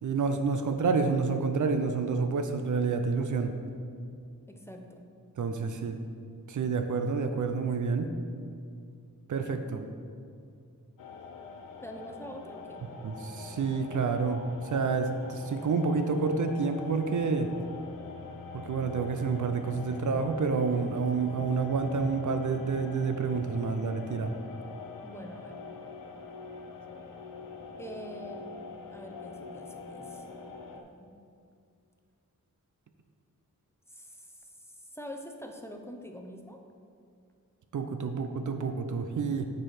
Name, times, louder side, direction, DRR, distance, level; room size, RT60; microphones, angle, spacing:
voice 1, 0.0-3.5 5.4-6.0 6.5-8.1 9.3-9.8 13.0-17.5 18.5-24.3 37.7-39.5, right 4 dB, 60° right, 6 dB, 0.5 m, -29 dB
voice 2, 4.5-5.1 11.8-12.8 25.0-25.6 27.8-28.5 28.9-30.5 31.0-31.1 33.9-36.6, equal, 10° left, 3 dB, 0.6 m, -45 dB
sound 1, 11.0-30.8, left 4 dB, 75° left, 0.7 m, -44 dB
7.4 x 4.7 x 4.4 m, 2.4 s
wide cardioid pair, 85°, 33 cm